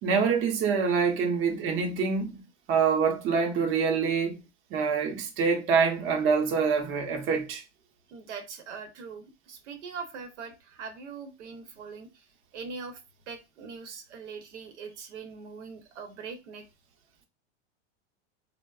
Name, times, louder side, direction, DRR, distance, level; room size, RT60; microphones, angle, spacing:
voice 1, 0.0-2.4 2.7-4.4 4.7-7.6, right 5 dB, 40° right, 0.7 m, -25 dB
voice 2, 8.1-12.3 12.5-13.0 13.3-16.6, right 5 dB, 85° right, 0.8 m, -42 dB
3.4 x 2.0 x 2.3 m
supercardioid pair, 135°, 35 cm